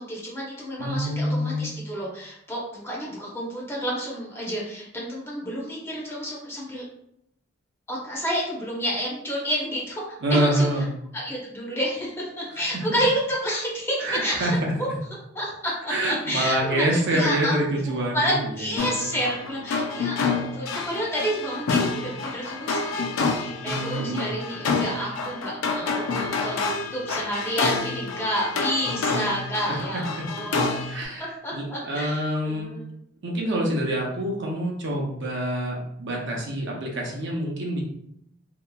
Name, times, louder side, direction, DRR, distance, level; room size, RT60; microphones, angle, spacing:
voice 1, 0.0-6.8 7.9-10.7 11.1-14.9 15.3-30.9 31.4-32.9, equal, 10° left, -4 dB, 0.7 m, -30 dB
voice 2, 0.8-1.6 10.2-10.9 14.0-14.9 15.9-18.9 23.7-24.4 29.7-29.8 30.9-32.7 33.2-37.8, right 1 dB, 65° right, -1 dB, 0.6 m, -26 dB
sound 1, 18.8-31.0, left 4 dB, 75° left, 0.4 m, -28 dB
2.9 x 2.4 x 2.2 m, 0.74 s
head